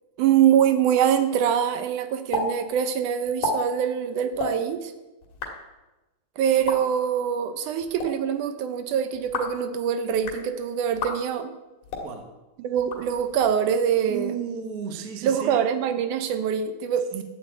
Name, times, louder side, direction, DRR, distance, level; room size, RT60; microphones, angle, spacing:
voice 1, 0.2-4.9 6.4-11.5 12.6-14.3 15.2-17.2, right 8 dB, 75° right, 9 dB, 2.2 m, -24 dB
sound 1, 2.3-2.5 2.7-2.8 3.2-3.5 4.3-4.5 5.2-5.5 6.5-6.8 7.8-8.1 9.1-9.6 10.1-10.4 10.9-11.1 11.8-12.1 12.8-13.5, left 3 dB, 65° left, 3.3 m, -31 dB
voice 2, 12.0-12.3 14.0-15.6 17.1-17.2, right 7 dB, 55° right, 6 dB, 1.0 m, -33 dB
12.0 x 7.7 x 8.2 m, 1.1 s
omnidirectional pair, 3.9 m